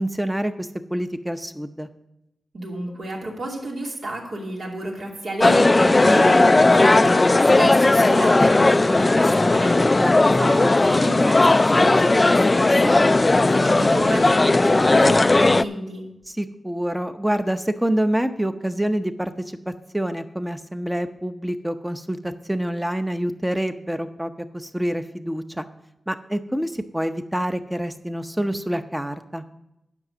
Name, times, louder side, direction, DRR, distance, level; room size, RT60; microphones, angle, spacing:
voice 1, 0.0-1.9 9.8-10.2 16.3-25.6 26.1-29.4, right 1 dB, 10° right, 9 dB, 0.7 m, -27 dB
voice 2, 2.5-7.3 7.6-9.8 10.2-16.0, right 1 dB, 75° right, -2 dB, 2.7 m, -31 dB
sound 1, 5.4-15.6, left 2 dB, 30° left, 0.3 m, -16 dB
10.5 x 5.9 x 7.1 m, 0.87 s
wide cardioid pair, 100°, 0 cm